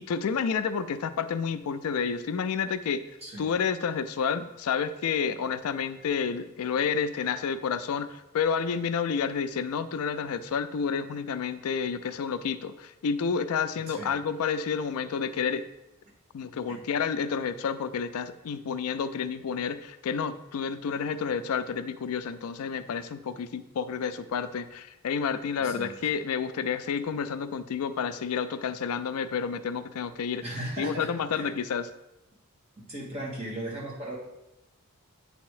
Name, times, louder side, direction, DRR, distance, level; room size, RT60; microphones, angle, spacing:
voice 1, 0.0-3.0 3.4-15.7 16.3-30.4 30.8-31.9, left 6 dB, 80° left, 12 dB, 0.4 m, -30 dB
voice 2, 25.6-25.9 30.4-31.5 32.8-34.2, right 1 dB, 30° right, -4 dB, 1.7 m, -37 dB
8.3 x 3.5 x 4.8 m, 0.91 s
head